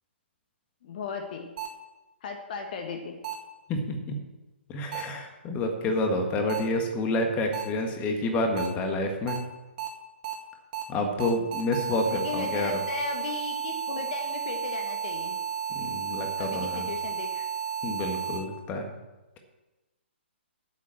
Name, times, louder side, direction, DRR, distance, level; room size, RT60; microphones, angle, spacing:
voice 1, 0.8-1.5 2.2-3.2 12.1-15.4 16.4-17.5, left 5 dB, 50° left, 4 dB, 1.3 m, -36 dB
sound 1, 1.6-1.7 3.2-3.3 4.9-5.0 6.5-6.6 7.5-7.6 8.6-8.7 9.3-9.4 9.8-9.9 10.2-10.3 10.7-10.8 11.2-18.4, right 8 dB, 40° right, 2.1 m, -33 dB
voice 2, 3.7-4.2 4.7-9.4 10.9-12.7 15.7-16.9 17.8-18.9, left 2 dB, 25° left, 4 dB, 1.7 m, -29 dB
9.1 x 7.6 x 7.5 m, 1.1 s
figure-of-eight pair, 130°, 6 cm